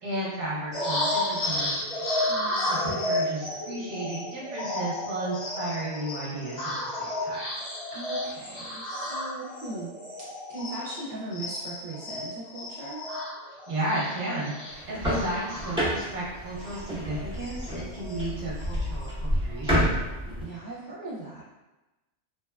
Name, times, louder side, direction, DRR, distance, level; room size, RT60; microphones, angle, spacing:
voice 1, 0.0-2.2 2.7-7.5 13.7-19.9, right 1 dB, 45° right, -6 dB, 0.9 m, -34 dB
sound 1, 0.7-11.0 11.3-16.2 16.6-16.8 17.1-18.2 18.6-19.1, left 1 dB, 90° left, 1.4 m, -32 dB
voice 2, 2.3-3.0 7.9-9.9 10.2-13.0 20.4-21.4, right 2 dB, 75° right, -6 dB, 0.9 m, -39 dB
sound 2, 14.7-20.4, equal, 5° right, 0.6 m, -29 dB
2.9 x 2.1 x 2.2 m, 1.1 s
omnidirectional pair, 1.3 m